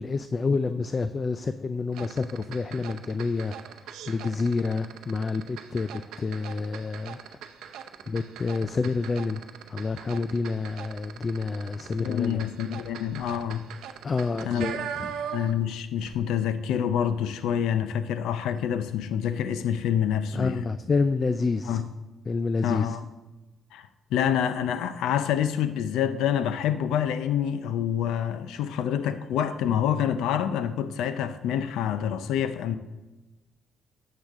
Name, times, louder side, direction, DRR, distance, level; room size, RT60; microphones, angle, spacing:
voice 1, 0.0-3.5 4.1-7.2 8.1-9.4 9.7-12.4 14.0-15.1 20.3-21.8 22.3-22.9, left 4 dB, 35° left, 0.4 m, -28 dB
sound 1, 1.9-15.7 16.0-16.1, right 8 dB, 85° right, 0.7 m, -40 dB
voice 2, 12.0-13.6 14.5-14.7 15.3-20.7 21.6-21.9 22.6-23.0 23.7-32.8, left 9 dB, 90° left, 0.6 m, -27 dB
13.0 x 8.3 x 3.6 m
cardioid pair, 90°, 0 cm